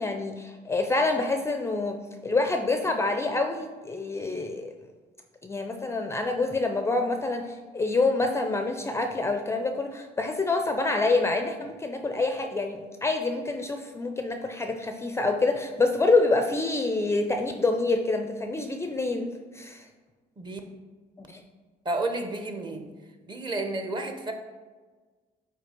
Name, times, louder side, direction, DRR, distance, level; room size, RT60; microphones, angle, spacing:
voice 1, 0.0-4.7 5.4-19.9 21.2-21.4, left 3 dB, 15° left, 5 dB, 0.4 m, -27 dB
voice 2, 21.8-22.8 23.3-24.3, right 2 dB, 25° right, 4 dB, 0.9 m, -31 dB
8.3 x 2.8 x 5.1 m, 1.4 s
cardioid pair, 110°, 17 cm